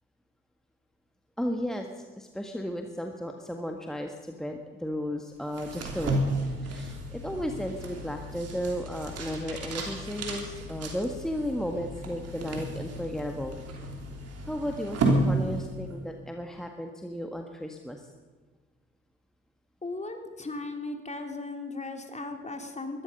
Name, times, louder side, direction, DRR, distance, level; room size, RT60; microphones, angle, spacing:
voice 1, 1.4-6.2 6.6-13.6 14.5-18.0, equal, ahead, 3 dB, 1.6 m, -34 dB
sound 1, 5.5-16.0, right 1 dB, 55° right, 3.3 m, -32 dB
voice 2, 19.8-23.0, left 2 dB, 25° left, 4 dB, 3.0 m, -37 dB
20.0 x 13.0 x 5.4 m, 1.4 s
hypercardioid pair, 45°, 29 cm